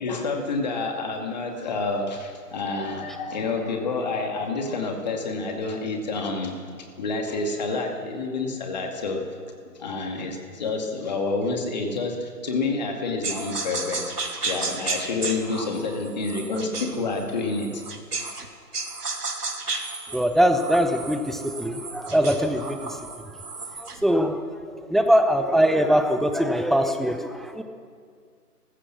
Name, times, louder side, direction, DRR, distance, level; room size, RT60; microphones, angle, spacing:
voice 1, 0.0-9.2 9.8-17.8 18.2-18.3, left 3 dB, 25° left, 2 dB, 2.4 m, -28 dB
sound 1, 13.2-18.5 18.7-24.0, right 3 dB, 75° right, 2.7 m, -33 dB
voice 2, 20.1-23.0 23.8-24.4 24.9-27.6, equal, ahead, 7 dB, 0.4 m, -22 dB
29.0 x 15.5 x 6.1 m, 2.1 s
figure-of-eight pair, 160°, 47 cm